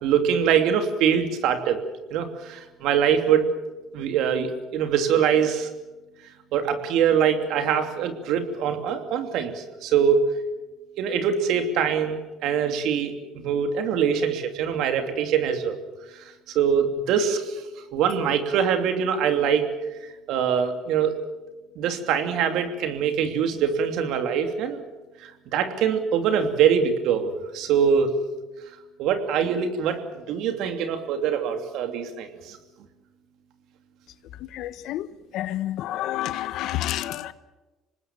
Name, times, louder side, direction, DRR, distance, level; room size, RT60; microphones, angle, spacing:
voice 1, 0.0-1.8 2.1-3.5 3.9-5.7 6.5-10.2 11.0-15.8 16.2-16.3 16.5-17.6 17.9-19.7 20.3-21.1 21.8-24.8 25.2-28.1 29.0-30.0 30.3-32.6, right 7 dB, 70° right, 3.0 m, -23 dB
voice 2, 34.4-35.1 35.3-37.3, left 14 dB, 70° left, 1.1 m, -29 dB
26.0 x 19.5 x 7.5 m
supercardioid pair, 85°, 0 cm